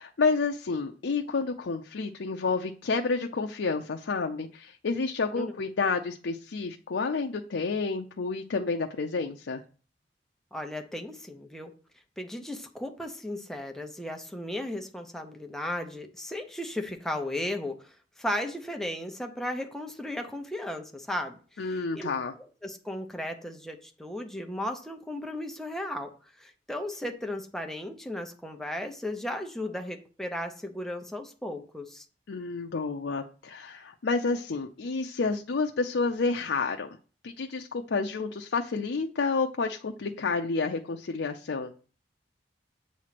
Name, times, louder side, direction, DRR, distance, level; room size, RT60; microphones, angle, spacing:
voice 1, 0.0-9.6 21.6-22.3 32.3-36.9 37.2-41.7, left 4 dB, 90° left, 4 dB, 0.5 m, -30 dB
voice 2, 10.5-11.7 12.2-22.1 22.4-26.1 26.4-32.0, left 1 dB, 5° left, 4 dB, 0.8 m, -35 dB
8.3 x 3.1 x 5.8 m, 0.39 s
head